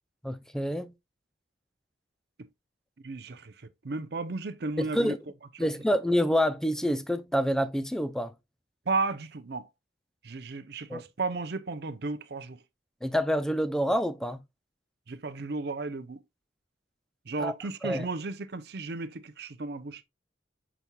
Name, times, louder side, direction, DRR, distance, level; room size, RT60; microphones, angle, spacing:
voice 1, 0.2-0.9 4.8-5.2 5.6-8.3 10.9-11.0 13.0-14.4 17.4-17.5 17.8-18.1, equal, 5° left, 0.4 m, -27 dB
voice 2, 3.0-3.5 3.8-5.1 5.6-5.7 8.9-9.7 10.2-12.6 15.1-16.2 17.3-20.0, right 3 dB, 60° right, 0.6 m, -34 dB
6.8 x 6.1 x 2.3 m
head